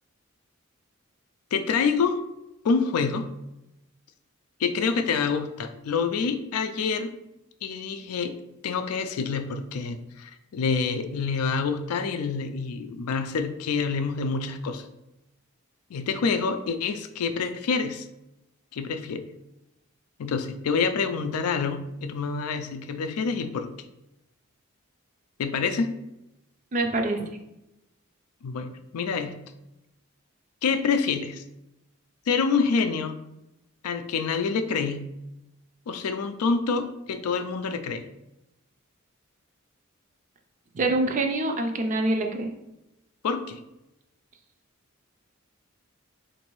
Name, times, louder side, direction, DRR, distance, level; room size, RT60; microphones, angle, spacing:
voice 1, 1.5-2.2 2.6-3.2 4.6-7.1 7.6-8.4 8.6-14.9 15.9-18.1 18.7-19.2 20.2-23.7 25.4-25.9 28.4-29.4 30.6-31.4 32.3-33.1 33.8-35.0 35.9-38.0 43.2-43.6, left 5 dB, 90° left, 8 dB, 0.4 m, -27 dB
voice 2, 26.7-27.3 40.7-42.5, right 2 dB, 35° right, 4 dB, 0.4 m, -25 dB
3.9 x 2.6 x 3.0 m, 0.91 s
head